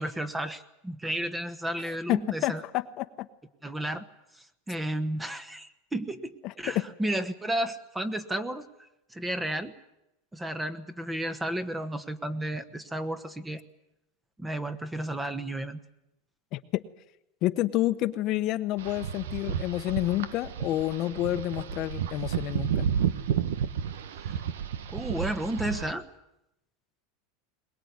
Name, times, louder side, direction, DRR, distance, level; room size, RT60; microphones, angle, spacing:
voice 1, 0.0-2.6 3.6-4.0 4.4-8.7 9.1-9.7 10.3-13.6 14.4-15.8 24.3-24.4 24.9-26.0, right 1 dB, 10° right, 12 dB, 1.3 m, -32 dB
voice 2, 1.8-3.0 6.4-6.9 16.5-16.8 17.4-22.9, left 15 dB, 45° left, 10 dB, 1.1 m, -29 dB
sound 1, 18.8-25.9, right 8 dB, 90° right, 1.2 m, -31 dB
22.5 x 21.0 x 9.6 m, 0.87 s
supercardioid pair, 135°, 0 cm